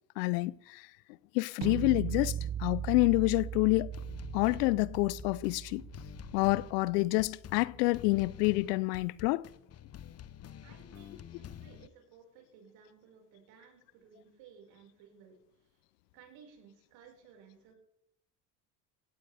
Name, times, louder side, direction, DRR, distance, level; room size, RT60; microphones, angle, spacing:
voice 1, 0.2-0.8 1.3-3.9 4.3-5.8 6.3-9.4, left 23 dB, 70° left, 0.6 m, -28 dB
sound 1, 1.6-7.6, right 10 dB, 45° right, 1.1 m, -39 dB
sound 2, 3.9-11.9, left 10 dB, 30° left, 0.8 m, -48 dB
voice 2, 10.6-15.8 16.1-17.8, right 6 dB, 65° right, 5.4 m, -58 dB
18.0 x 16.0 x 3.5 m
hypercardioid pair, 70°, 49 cm